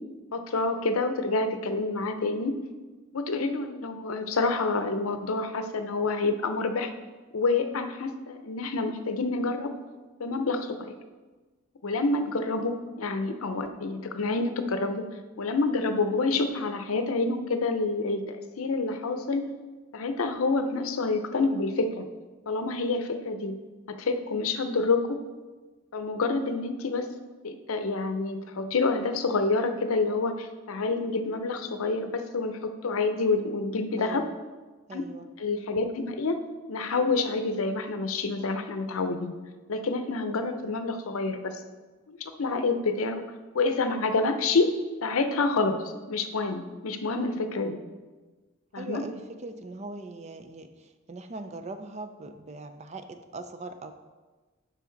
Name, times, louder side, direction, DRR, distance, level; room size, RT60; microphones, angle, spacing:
voice 1, 0.3-2.5 3.1-6.9 7.3-9.7 10.2-10.9 11.8-15.0 15.4-19.4 19.9-22.1 22.5-23.6 23.9-25.2 25.9-27.1 27.4-34.2 34.9-35.0 35.4-36.4 36.7-39.4 39.7-41.6 42.1-43.2 43.5-44.7 45.0-47.8 48.7-49.0, left 3 dB, 80° left, 8 dB, 0.6 m, -28 dB
voice 2, 34.0-34.3 34.9-35.3 48.8-53.9, right 2 dB, 30° right, 8 dB, 0.4 m, -40 dB
7.6 x 5.7 x 3.9 m, 1.3 s
head